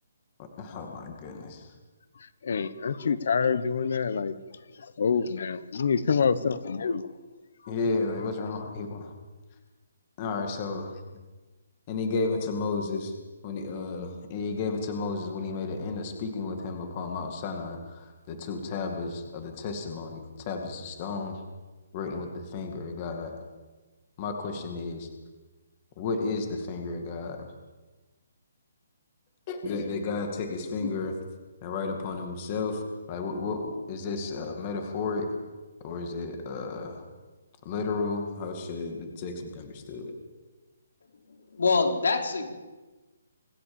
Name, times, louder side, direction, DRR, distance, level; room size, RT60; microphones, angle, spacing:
voice 1, 0.4-1.7 7.7-9.1 10.2-10.9 11.9-13.1 13.4-21.4 21.9-23.4 24.2-25.1 26.0-27.5 29.5-31.1 31.6-32.8 33.1-35.3 35.8-37.0 37.6-40.1, left 4 dB, 20° left, 4 dB, 2.2 m, -33 dB
voice 2, 2.4-4.4 4.8-7.1, left 6 dB, 50° left, 15 dB, 1.1 m, -26 dB
voice 3, 41.3-42.6, left 4 dB, 75° left, 3 dB, 4.1 m, -26 dB
26.0 x 14.0 x 7.2 m, 1.2 s
hypercardioid pair, 180°, 0 cm